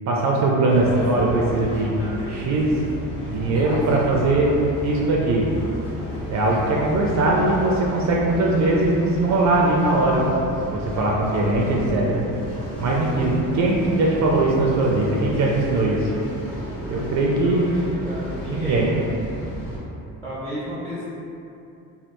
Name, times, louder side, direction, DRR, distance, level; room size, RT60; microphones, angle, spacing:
voice 1, 0.1-2.0 2.3-2.7 3.3-4.6 4.8-5.5 6.3-10.2 10.6-12.2 12.8-16.0 16.8-17.6 18.5-18.9, right 2 dB, 55° right, -3 dB, 0.4 m, -20 dB
sound 1, 0.7-19.8, equal, 45° left, 1.0 m, -33 dB
voice 2, 17.2-18.8 20.2-21.0, equal, 10° left, -9 dB, 0.5 m, -33 dB
3.3 x 2.3 x 2.9 m, 2.7 s
cardioid pair, 135°, 35 cm